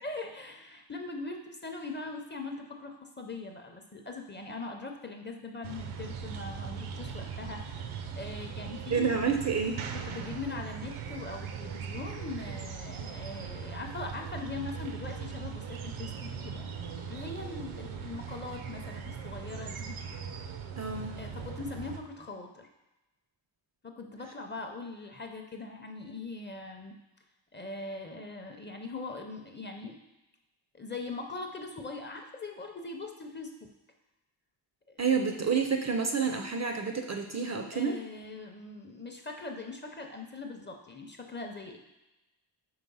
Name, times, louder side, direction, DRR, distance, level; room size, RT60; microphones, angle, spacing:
voice 1, 0.0-9.1 10.0-20.0 21.2-22.7 23.8-27.0 27.5-30.0 30.7-33.7 34.9-35.0 37.7-41.8, left 3 dB, 25° left, 3 dB, 0.6 m, -41 dB
sound 1, 5.6-22.0, right 6 dB, 85° right, 0.7 m, -40 dB
voice 2, 8.9-9.8 20.8-21.2 35.0-38.0, right 5 dB, 35° right, 4 dB, 0.5 m, -29 dB
4.7 x 4.1 x 5.4 m, 1.0 s
wide cardioid pair, 115°, 48 cm